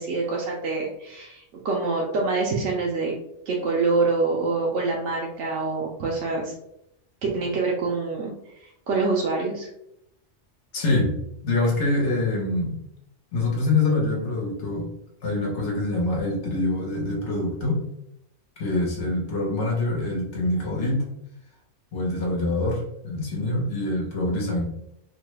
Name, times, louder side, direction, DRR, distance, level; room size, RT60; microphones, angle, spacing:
voice 1, 0.0-3.1 3.5-6.5 7.2-8.3 8.6-9.7, right 3 dB, 85° right, -2 dB, 0.9 m, -25 dB
voice 2, 10.7-11.1 11.4-12.8 13.3-14.9 15.2-17.8 18.6-21.1 21.9-24.6, left 2 dB, 75° left, -2 dB, 1.2 m, -25 dB
3.1 x 2.2 x 3.1 m, 0.78 s
omnidirectional pair, 1.2 m